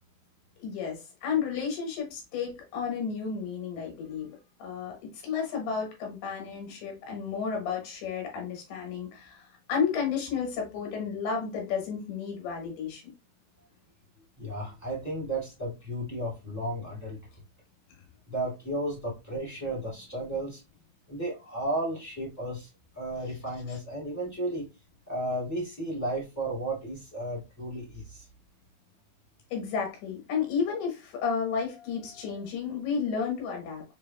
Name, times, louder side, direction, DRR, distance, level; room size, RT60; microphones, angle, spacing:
voice 1, 0.6-13.1 29.5-33.8, left 6 dB, 85° left, 1 dB, 3.4 m, -32 dB
voice 2, 14.4-17.2 18.3-20.6 21.1-22.7 22.9-24.7 25.1-28.2, right 1 dB, 15° left, -7 dB, 0.6 m, -33 dB
6.7 x 2.6 x 2.2 m, 0.27 s
omnidirectional pair, 4.4 m